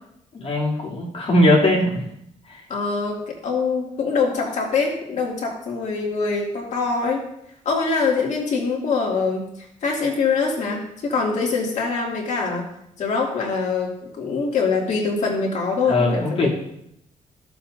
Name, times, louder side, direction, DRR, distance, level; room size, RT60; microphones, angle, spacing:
voice 1, 0.3-2.0 2.5-2.6 15.9-16.5, left 1 dB, 45° left, -3 dB, 2.9 m, -19 dB
voice 2, 2.7-7.2 7.6-9.5 9.8-12.7 13.0-16.5, left 4 dB, 60° left, -2 dB, 2.4 m, -24 dB
15.0 x 7.2 x 2.6 m, 0.75 s
cardioid pair, 120°, 14 cm